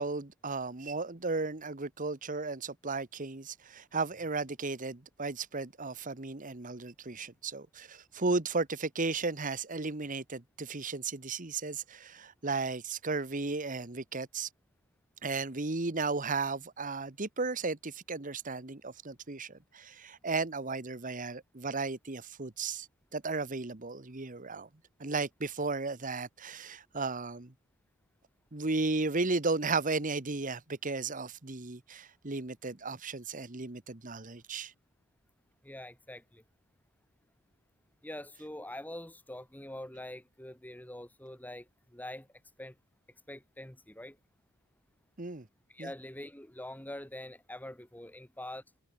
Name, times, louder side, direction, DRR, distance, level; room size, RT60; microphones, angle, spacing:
voice 1, 0.0-14.5 15.2-22.9 23.1-24.7 25.0-27.5 28.5-34.7 45.2-45.5 45.8-45.9, right 3 dB, 40° right, 1.3 m, -35 dB
voice 2, 35.6-36.4 38.0-41.6 41.9-42.3 42.6-42.7 43.3-44.1 45.7-48.6, left 1 dB, 10° left, 2.5 m, -44 dB
head